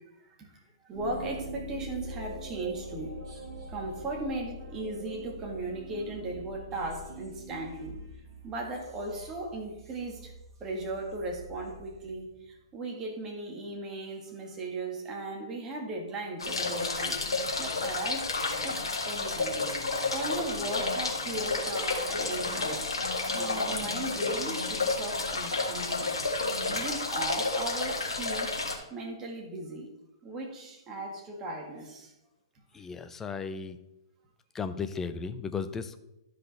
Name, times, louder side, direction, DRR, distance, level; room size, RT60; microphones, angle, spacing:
voice 1, 0.0-3.1 3.7-7.9 8.4-10.3 10.6-17.2 17.6-18.3 18.6-19.6 20.1-26.1 26.7-28.5 28.9-29.9 30.2-32.1, right 2 dB, 20° right, 0 dB, 2.0 m, -37 dB
sound 1, 0.9-12.5, right 1 dB, 50° right, 2.5 m, -43 dB
sound 2, 16.4-28.8, left 3 dB, 75° left, 1.8 m, -31 dB
voice 2, 32.7-33.8 34.5-36.0, left 5 dB, 15° left, 10 dB, 0.6 m, -35 dB
12.5 x 5.1 x 4.2 m, 0.93 s
figure-of-eight pair, 120°, 3 cm